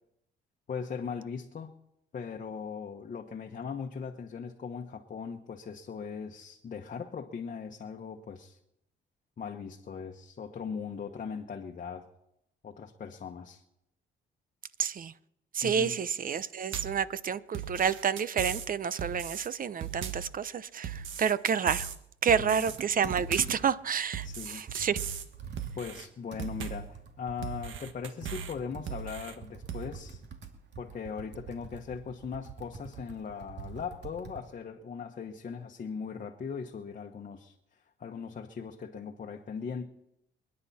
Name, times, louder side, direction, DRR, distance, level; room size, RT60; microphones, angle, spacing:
voice 1, 0.7-1.7 2.1-8.6 9.4-12.1 12.6-13.6 15.6-16.0 22.2-22.7 24.2-24.6 25.8-30.2 30.8-39.9, left 6 dB, 40° left, 1.2 m, -39 dB
voice 2, 14.8-15.1 15.5-21.9 22.2-25.0, right 7 dB, 45° right, 0.7 m, -29 dB
sound 1, 16.7-17.0 17.5-18.7 19.0-19.5 19.8-20.3 20.8-22.0 22.3-22.8 23.1-23.6 24.1-25.3 25.6-26.1 26.4-26.9 27.4-28.5 28.9-29.3 29.7-29.9, right 8 dB, 75° right, 1.5 m, -38 dB
Computer keyboard, 22.7-23.8 24.3-24.4 24.7-34.5, right 6 dB, 60° right, 2.5 m, -45 dB
28.0 x 9.8 x 4.3 m
cardioid pair, 90°, 20 cm